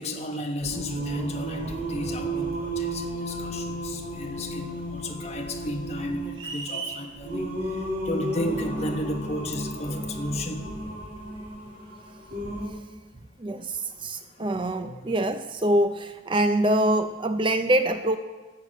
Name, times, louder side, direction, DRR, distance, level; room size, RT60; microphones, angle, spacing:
voice 1, 0.0-10.8 13.9-14.0 14.4-15.0, equal, 35° left, 1.3 m, -33 dB
Singing, 0.6-12.7, right 1 dB, 45° right, 5.0 m, -33 dB
sound 1, 6.3-7.1, right 5 dB, 85° right, 1.3 m, -35 dB
voice 2, 13.4-18.2, right 1 dB, 25° right, 0.5 m, -24 dB
13.0 x 6.8 x 8.4 m
head